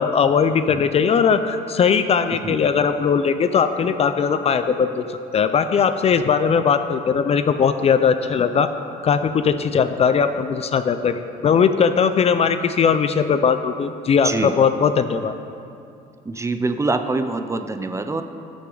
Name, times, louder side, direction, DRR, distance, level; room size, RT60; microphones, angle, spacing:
voice 1, 0.0-8.7 9.0-15.4, left 6 dB, 35° left, 10 dB, 0.4 m, -19 dB
voice 2, 14.2-14.6 16.2-18.2, right 3 dB, 15° right, 8 dB, 0.5 m, -24 dB
14.0 x 6.1 x 3.9 m, 2.5 s
cardioid pair, 110°, 17 cm